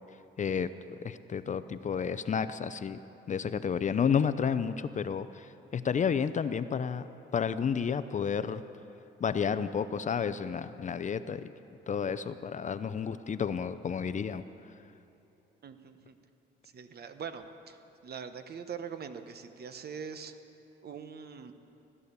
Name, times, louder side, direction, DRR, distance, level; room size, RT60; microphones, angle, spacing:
voice 1, 0.4-0.7 1.0-3.0 3.3-8.6 9.2-11.5 11.9-14.4, left 7 dB, 40° left, 13 dB, 0.5 m, -31 dB
voice 2, 15.6-16.2 16.7-17.8 18.0-20.4 20.8-21.5, right 6 dB, 55° right, 9 dB, 1.1 m, -42 dB
15.5 x 11.0 x 6.8 m, 2.9 s
cardioid pair, 90°, 20 cm